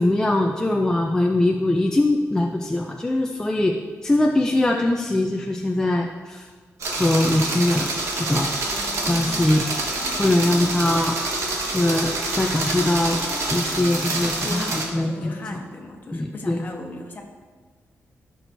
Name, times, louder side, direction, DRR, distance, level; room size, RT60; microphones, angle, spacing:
voice 1, 0.0-3.7 4.0-6.5 7.0-8.5 9.1-9.7 10.2-11.1 11.7-13.2 13.5-15.3 16.1-16.6, left 1 dB, 10° left, 1 dB, 0.4 m, -22 dB
sound 1, 6.8-14.8, right 2 dB, 75° right, 1.5 m, -27 dB
Wind instrument woodwind instrument, 8.6-16.0, left 3 dB, 75° left, 1.3 m, -39 dB
voice 2, 14.4-17.2, left 2 dB, 40° left, 1 dB, 1.2 m, -36 dB
15.5 x 6.1 x 2.7 m, 1.5 s
wide cardioid pair, 160°, 5 cm